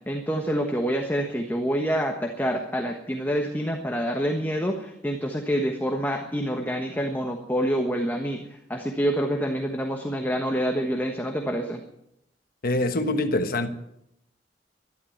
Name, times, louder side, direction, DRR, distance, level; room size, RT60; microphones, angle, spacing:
voice 1, 0.1-11.8, equal, 10° left, 1.3 m, -27 dB
voice 2, 12.6-13.7, left 2 dB, 55° left, 1.3 m, -24 dB
12.0 x 12.0 x 8.7 m
head